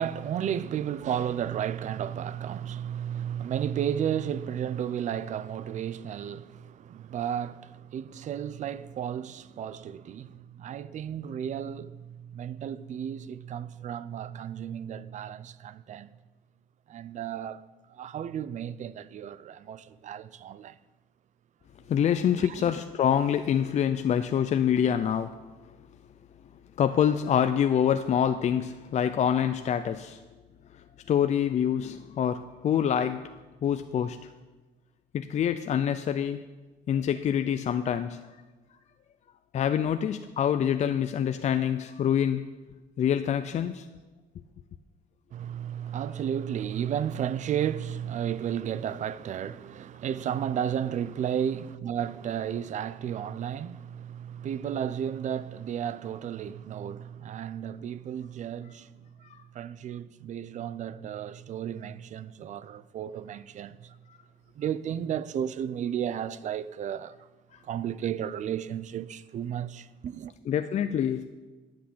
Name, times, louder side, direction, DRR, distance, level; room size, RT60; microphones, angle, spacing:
voice 1, 0.0-16.1 16.9-17.6 17.9-20.8 22.4-22.7 45.3-58.9 59.5-63.9 64.6-67.2 67.6-70.3, right 9 dB, 45° right, 0.5 m, -33 dB
voice 2, 21.9-25.4 26.8-30.2 31.1-33.3 33.6-34.2 35.1-36.4 36.9-38.2 39.5-42.5 43.0-43.9 64.1-64.2 70.5-71.3, left 9 dB, 40° left, 0.5 m, -26 dB
9.7 x 6.1 x 8.5 m
cardioid pair, 110°, 17 cm